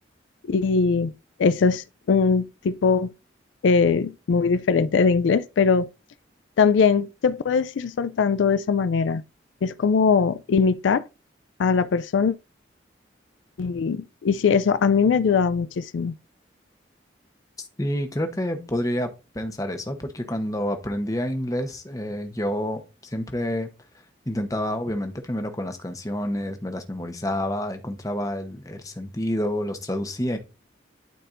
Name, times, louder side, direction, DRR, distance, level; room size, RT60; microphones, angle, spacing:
voice 1, 0.5-1.1 1.4-3.1 3.6-5.9 6.6-9.2 9.6-11.0 11.6-12.3 13.6-16.1, left 5 dB, 85° left, 0.4 m, -21 dB
voice 2, 17.8-23.7 24.3-30.4, left 1 dB, 20° left, 0.9 m, -28 dB
12.0 x 4.3 x 2.6 m
head